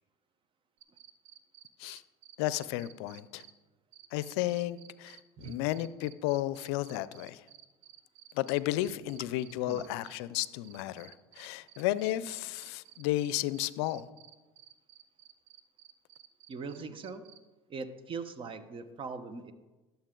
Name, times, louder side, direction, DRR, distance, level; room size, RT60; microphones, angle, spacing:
sound 1, 0.8-3.5 3.9-17.4, right 12 dB, 80° right, 0.6 m, -54 dB
voice 1, 2.4-3.4 4.1-7.4 8.3-14.1, left 15 dB, 75° left, 17 dB, 0.5 m, -33 dB
voice 2, 16.5-17.2 17.7-19.5, right 4 dB, 40° right, 12 dB, 0.9 m, -41 dB
12.5 x 7.1 x 3.8 m, 1.2 s
hypercardioid pair, 85°, 14 cm